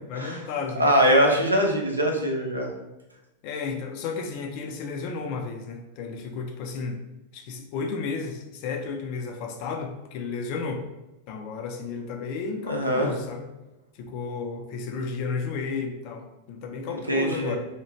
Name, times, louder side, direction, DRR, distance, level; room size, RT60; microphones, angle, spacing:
voice 1, 0.1-0.9 3.4-7.0 7.3-10.9 11.3-13.5 13.9-17.6, left 4 dB, 45° left, 4 dB, 0.4 m, -33 dB
voice 2, 0.8-2.7 12.7-13.1 16.9-17.5, equal, 85° right, 0 dB, 0.5 m, -22 dB
2.8 x 2.3 x 2.9 m, 0.98 s
figure-of-eight pair, 90°, 0 cm